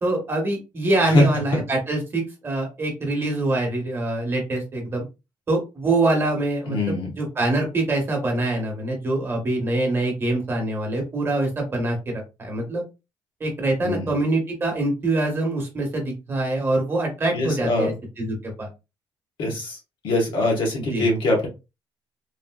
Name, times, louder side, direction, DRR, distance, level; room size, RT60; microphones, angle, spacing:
voice 1, 0.0-5.0 5.5-12.8 13.4-18.7 20.9-21.1, right 2 dB, 25° right, 1 dB, 1.0 m, -24 dB
voice 2, 6.7-7.1 13.8-14.1 17.3-17.9 19.4-19.8 20.0-21.5, left 2 dB, 65° left, 0 dB, 1.4 m, -22 dB
3.2 x 2.5 x 2.3 m, 0.27 s
cardioid pair, 160°, 9 cm